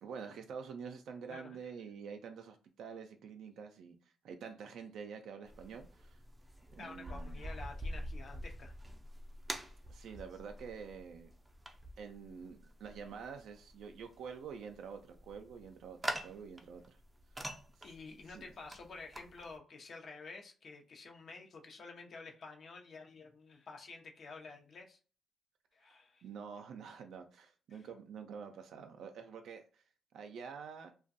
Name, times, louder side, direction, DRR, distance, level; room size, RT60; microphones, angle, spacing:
voice 1, 0.0-4.0 4.2-6.2 6.7-7.4 9.9-11.3 12.0-17.0 18.3-18.4 26.2-29.8 30.1-30.9, right 6 dB, 70° right, 0.4 m, -47 dB
sound 1, 5.5-19.6, right 1 dB, 10° right, 0.4 m, -46 dB
voice 2, 6.8-8.7 17.8-25.0 25.7-26.2 27.7-27.9, left 4 dB, 55° left, 0.7 m, -50 dB
2.4 x 2.2 x 2.6 m
cardioid pair, 90°, 0 cm